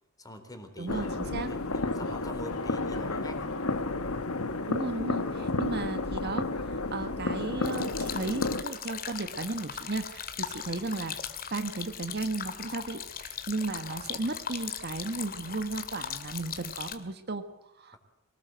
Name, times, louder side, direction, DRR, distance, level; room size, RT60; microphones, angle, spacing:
voice 1, 0.2-1.1 1.5-3.6 5.3-5.6 14.2-14.4, left 1 dB, 15° left, 6 dB, 4.1 m, -44 dB
voice 2, 0.8-1.5 4.7-11.1 11.5-18.0, right 2 dB, 50° right, 9 dB, 1.4 m, -35 dB
sound 1, 0.9-8.6, left 2 dB, 85° left, 1.6 m, -31 dB
sound 2, 7.6-17.0, left 8 dB, 45° left, 2.2 m, -39 dB
23.5 x 19.0 x 7.8 m, 0.94 s
head